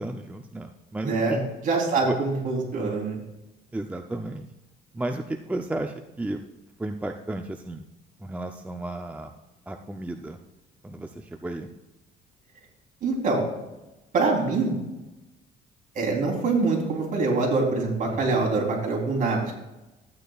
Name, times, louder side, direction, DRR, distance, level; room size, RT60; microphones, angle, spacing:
voice 1, 0.0-1.4 2.0-2.2 3.7-4.5 4.9-6.4 6.8-7.8 8.2-9.3 9.7-10.4 10.8-11.7 18.1-18.5, right 2 dB, 10° right, 5 dB, 0.5 m, -33 dB
voice 2, 1.0-3.1 13.0-13.4 14.1-14.7 15.9-19.5, right 3 dB, 50° right, -1 dB, 3.4 m, -24 dB
13.5 x 9.2 x 2.4 m, 1.0 s
cardioid pair, 110°, 17 cm